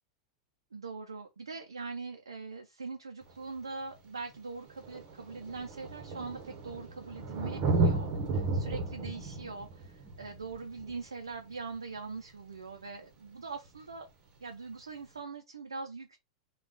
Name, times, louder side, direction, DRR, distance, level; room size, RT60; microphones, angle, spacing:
voice 1, 0.7-8.1 8.5-14.1 14.4-16.2, right 4 dB, 90° right, 0.5 m, -42 dB
Thunder, 3.3-3.4 4.3-4.4 4.7-12.0 13.7-13.8, right 3 dB, 45° right, 1.1 m, -33 dB
3.4 x 2.3 x 3.9 m
hypercardioid pair, 95°, 2 cm